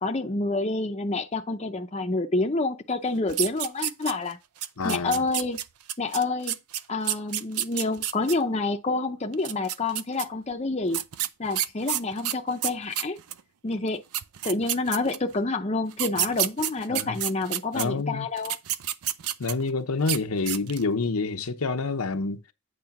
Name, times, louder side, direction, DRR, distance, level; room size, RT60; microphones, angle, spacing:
voice 1, 0.0-4.4 4.8-5.6 6.0-6.6 6.9-11.0 11.4-13.2 13.6-14.0 14.4-18.6, left 3 dB, 30° left, 0.6 m, -28 dB
sound 1, 3.3-4.3 4.6-8.3 9.3-10.2 10.9-13.4 13.9-14.0 14.1-15.3 15.9-17.8 18.4-19.7 20.0-20.2 20.5-20.9, right 12 dB, 85° right, 0.5 m, -29 dB
voice 2, 4.8-5.2 16.9-17.2 17.7-18.3 19.4-22.4, left 3 dB, 80° left, 0.8 m, -27 dB
8.8 x 3.2 x 5.9 m
head